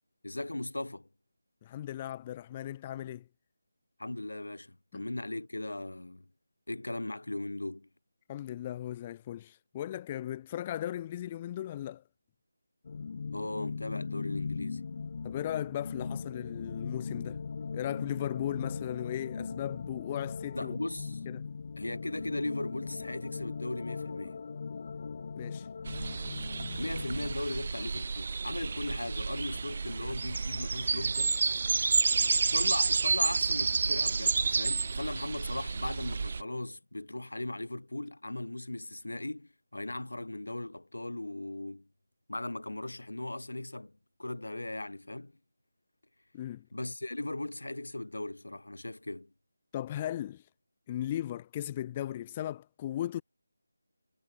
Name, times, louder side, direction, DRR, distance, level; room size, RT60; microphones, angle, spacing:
voice 1, 0.2-1.1 4.0-6.3 6.7-7.9 13.3-14.8 20.5-21.2 21.8-24.4 26.8-31.4 32.5-41.9 42.3-45.3 46.7-49.3, left 2 dB, 80° left, 6.4 m, -38 dB
voice 2, 1.6-3.2 8.3-12.0 15.2-17.4 17.7-20.8 21.3-21.5 25.4-25.7 46.3-46.6 49.7-50.5 50.9-53.2, left 12 dB, 20° left, 0.8 m, -37 dB
sound 1, 12.8-27.3, left 5 dB, 40° left, 2.5 m, -39 dB
sound 2, 25.8-36.4, right 4 dB, 45° right, 0.7 m, -30 dB
figure-of-eight pair, 160°, 0 cm